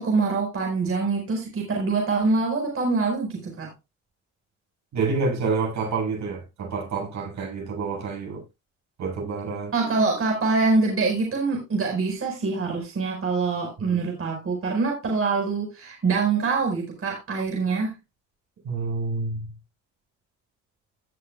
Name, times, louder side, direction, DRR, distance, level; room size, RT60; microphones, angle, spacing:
voice 1, 0.0-3.7 9.7-17.9, right 4 dB, 45° right, 4.7 m, -24 dB
voice 2, 4.9-8.4 9.0-9.7 13.9-14.0 18.6-19.5, right 4 dB, 65° right, 6.6 m, -28 dB
17.0 x 7.0 x 2.3 m
cardioid pair, 90°, 30 cm